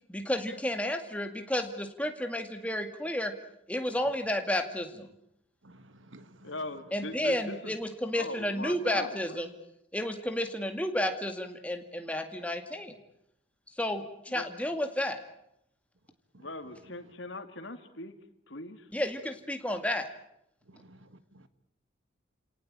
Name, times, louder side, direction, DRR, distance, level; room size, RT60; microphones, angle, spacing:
voice 1, 0.1-3.3 3.7-5.1 6.9-9.5 9.9-12.9 13.8-15.2 18.9-20.1, left 1 dB, 5° left, 6 dB, 2.1 m, -32 dB
voice 2, 5.6-6.6 16.3-16.5 16.8-17.1 20.7-21.5, right 1 dB, 85° right, 12 dB, 1.7 m, -55 dB
voice 3, 6.4-7.8 8.1-9.4 14.3-14.5 16.4-18.2 18.5-18.9, left 2 dB, 75° left, 9 dB, 2.4 m, -40 dB
29.5 x 18.5 x 8.9 m, 0.78 s
head